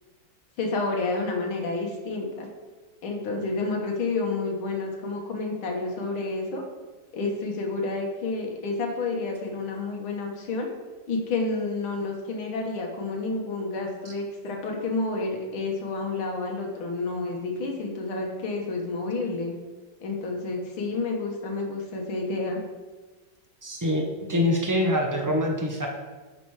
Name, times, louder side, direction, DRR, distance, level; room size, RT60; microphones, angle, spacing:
voice 1, 0.6-2.5 3.0-6.6 7.1-10.7 11.1-19.6 20.0-22.6, left 3 dB, 80° left, 1 dB, 2.2 m, -30 dB
voice 2, 23.6-25.9, left 1 dB, 30° right, 1 dB, 0.3 m, -25 dB
9.1 x 5.5 x 4.8 m, 1.3 s
omnidirectional pair, 2.2 m